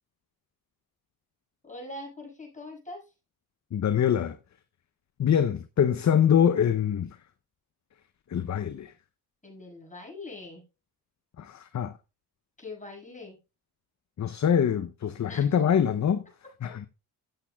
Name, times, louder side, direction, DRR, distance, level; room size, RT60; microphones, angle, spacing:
voice 1, 1.6-3.1 9.4-10.6 12.6-13.4 15.3-15.6 16.6-16.7, left 2 dB, 20° left, 6.4 m, -42 dB
voice 2, 3.7-4.4 5.2-7.2 8.3-8.9 11.4-12.0 14.2-16.3 16.6-16.9, left 8 dB, 45° left, 0.7 m, -24 dB
14.5 x 7.1 x 2.2 m
supercardioid pair, 55°, 41 cm